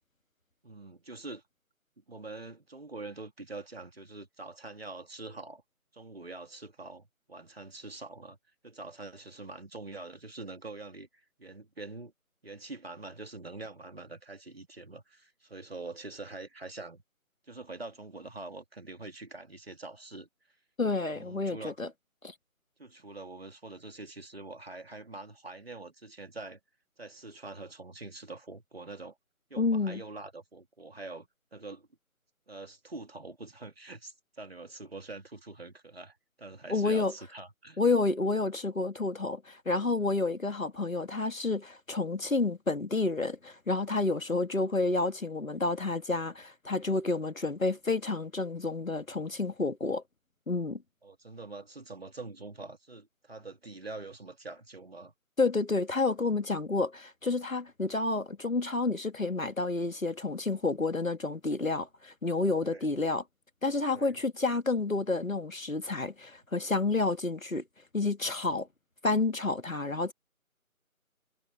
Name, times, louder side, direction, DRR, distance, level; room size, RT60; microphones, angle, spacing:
voice 1, 0.6-1.4 2.1-5.6 5.9-7.0 7.3-8.4 8.6-11.1 11.4-12.1 12.4-17.0 17.5-20.3 21.1-21.8 22.8-26.6 27.0-29.1 29.5-31.9 32.5-37.8 51.0-55.1 62.6-62.8 63.9-64.2, right 3 dB, 45° right, 3.1 m, -44 dB
voice 2, 20.8-21.9 22.2-22.3 29.6-30.0 36.7-37.1 37.8-50.0 50.5-50.8 55.4-63.2 63.6-67.6 67.9-68.7 69.0-70.1, left 3 dB, 65° left, 2.1 m, -30 dB
figure-of-eight pair, 165°, 43 cm